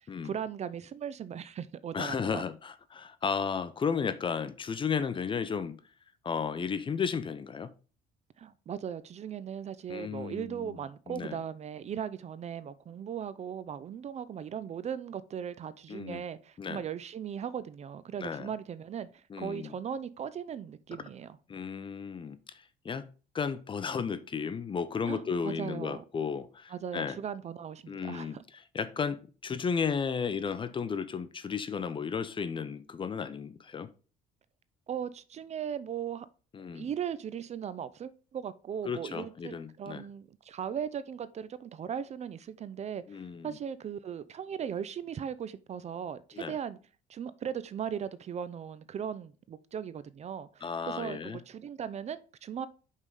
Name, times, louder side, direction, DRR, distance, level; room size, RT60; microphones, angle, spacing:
voice 1, 0.2-2.4 8.4-21.4 25.1-26.0 26.7-28.4 34.9-36.3 36.7-46.8 47.1-52.7, right 8 dB, 40° right, 0.5 m, -38 dB
voice 2, 1.9-5.8 6.2-7.7 9.9-10.8 11.1-11.4 15.9-16.2 16.6-16.8 18.2-18.5 19.3-19.8 21.5-23.1 23.3-27.2 27.9-33.9 36.5-36.9 38.8-40.1 43.1-43.6 46.3-46.6 50.6-51.4, left 6 dB, 30° left, 0.6 m, -34 dB
5.6 x 4.8 x 5.3 m
cardioid pair, 110°, 17 cm